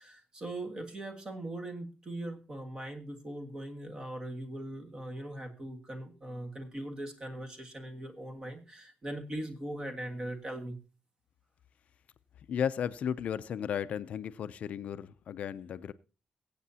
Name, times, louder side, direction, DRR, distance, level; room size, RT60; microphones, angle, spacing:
voice 1, 0.0-10.8, right 1 dB, 25° right, 1.7 m, -40 dB
voice 2, 12.5-15.9, left 8 dB, 55° left, 0.5 m, -34 dB
23.0 x 8.3 x 2.8 m
cardioid pair, 160°, 3 cm